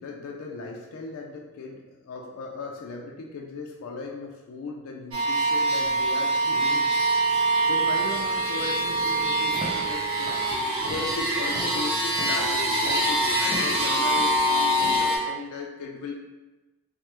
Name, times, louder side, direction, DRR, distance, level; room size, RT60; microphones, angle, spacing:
voice 1, 0.0-6.9 7.6-10.4 10.8-16.2, left 3 dB, 85° left, 0 dB, 0.4 m, -37 dB
sound 1, 5.1-15.2, right 1 dB, 85° right, 0.8 m, -24 dB
Walk footsteps / Siren, 9.4-15.1, equal, 25° right, 0.5 m, -41 dB
3.2 x 2.0 x 2.9 m, 1.1 s
head